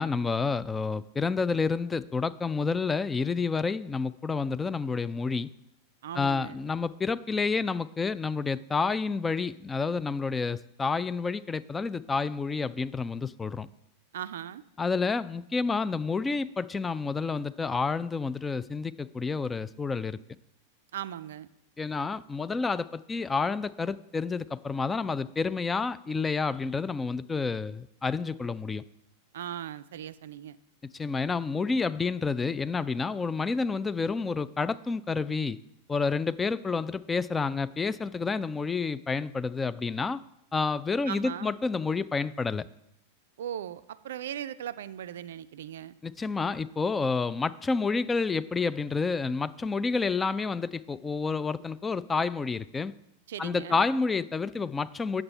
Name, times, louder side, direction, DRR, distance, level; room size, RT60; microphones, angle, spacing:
voice 1, 0.0-5.5 6.2-13.7 14.8-20.2 21.8-28.8 30.9-35.6 35.9-40.2 40.5-42.7 46.0-52.9 53.4-55.2, left 4 dB, 15° left, 16 dB, 0.3 m, -29 dB
voice 2, 6.0-6.6 14.1-14.6 20.9-21.5 29.3-30.6 41.1-41.5 43.4-45.9 53.3-53.8, right 10 dB, 60° right, 15 dB, 0.4 m, -38 dB
8.7 x 7.1 x 5.5 m, 0.80 s
figure-of-eight pair, 90°, 0 cm